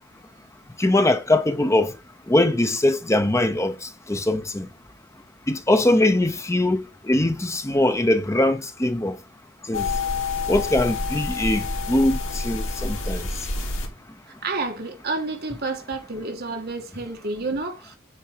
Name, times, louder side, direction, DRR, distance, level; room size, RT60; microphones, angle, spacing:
voice 1, 0.8-1.9 2.3-3.7 4.1-4.7 5.5-6.8 7.1-9.1 9.7-9.8 10.5-13.2, left 1 dB, 15° left, 0.7 m, -21 dB
sound 1, 9.7-13.9, left 3 dB, 75° left, 2.8 m, -28 dB
voice 2, 14.4-18.0, right 3 dB, 50° right, 1.7 m, -30 dB
9.2 x 4.6 x 4.5 m
head